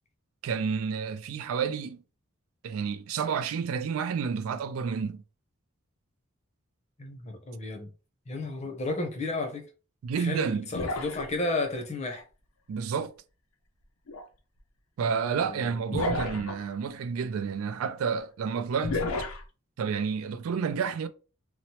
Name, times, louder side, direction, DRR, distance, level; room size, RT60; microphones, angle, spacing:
voice 1, 0.4-2.0 2.6-5.2 10.0-10.7 12.7-13.1 15.0-19.0 19.8-21.1, right 6 dB, 75° right, 0.3 m, -30 dB
voice 2, 7.0-7.9 8.3-9.7 10.2-12.2 15.0-15.2 15.4-15.7, left 2 dB, 30° left, 0.6 m, -33 dB
sound 1, 10.7-11.7 14.1-14.2 15.9-16.7 18.8-19.4, left 2 dB, 80° left, 0.5 m, -31 dB
2.9 x 2.0 x 2.8 m
head